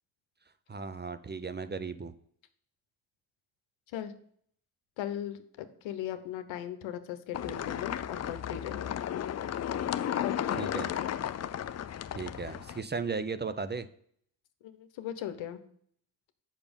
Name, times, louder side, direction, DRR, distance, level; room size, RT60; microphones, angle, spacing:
voice 1, 0.7-2.1 10.6-10.9 12.1-13.9, right 4 dB, 20° right, 12 dB, 0.6 m, -36 dB
voice 2, 5.0-9.0 10.2-11.1 14.6-15.6, left 10 dB, 75° left, 11 dB, 1.0 m, -38 dB
sound 1, 7.3-12.8, left 10 dB, 35° left, 0.5 m, -34 dB
6.9 x 5.7 x 5.2 m, 0.64 s
supercardioid pair, 50°, 47 cm